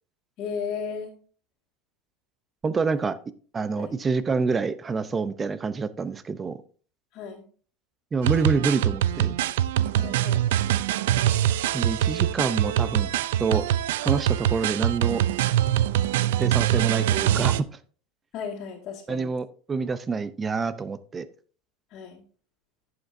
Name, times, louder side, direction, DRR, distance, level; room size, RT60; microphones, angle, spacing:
voice 1, 0.4-1.1 2.9-3.0 3.8-4.0 7.1-7.4 10.0-10.5 18.3-19.3 21.9-22.2, left 6 dB, 45° left, -6 dB, 2.2 m, -35 dB
voice 2, 2.6-3.1 3.5-6.6 8.1-9.4 11.7-13.1 13.4-13.6 14.0-15.2 16.4-17.7 19.1-21.3, right 4 dB, 20° right, 15 dB, 0.6 m, -27 dB
sound 1, 8.2-17.6, right 11 dB, 85° right, 0.4 m, -23 dB
11.0 x 7.9 x 2.7 m, 0.42 s
supercardioid pair, 130°, 0 cm